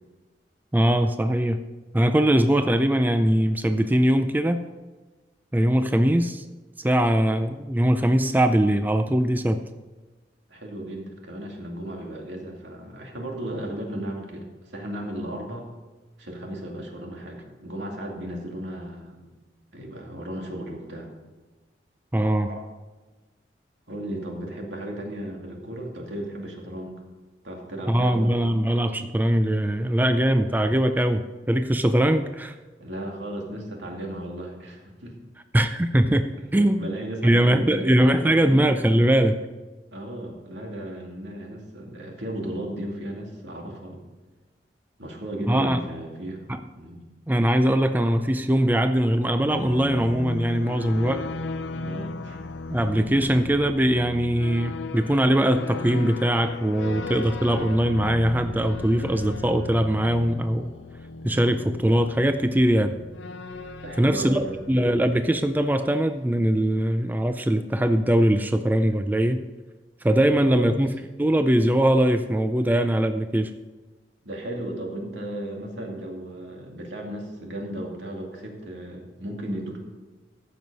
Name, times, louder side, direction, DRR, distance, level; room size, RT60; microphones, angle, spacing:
voice 1, 0.7-1.6 1.9-4.7 5.5-6.4 6.8-9.6 22.1-22.5 27.9-32.5 35.5-36.9 37.2-39.4 45.5-45.8 46.5-46.6 47.3-51.2 52.7-60.7 61.2-62.9 64.0-69.4 70.0-70.9 71.2-73.5, right 1 dB, 10° right, 8 dB, 0.4 m, -21 dB
voice 2, 10.5-15.7 16.2-19.3 19.7-21.1 22.5-22.6 23.9-27.0 27.4-28.3 32.8-35.1 36.7-38.8 39.9-44.1 45.0-46.4 46.8-47.0 51.8-52.4 53.2-53.3 63.8-64.6 70.5-70.8 74.2-79.8, right 1 dB, 80° right, 0 dB, 2.4 m, -35 dB
sound 1, 49.1-65.8, left 3 dB, 85° left, 0.6 m, -36 dB
14.5 x 6.2 x 5.4 m, 1.2 s
head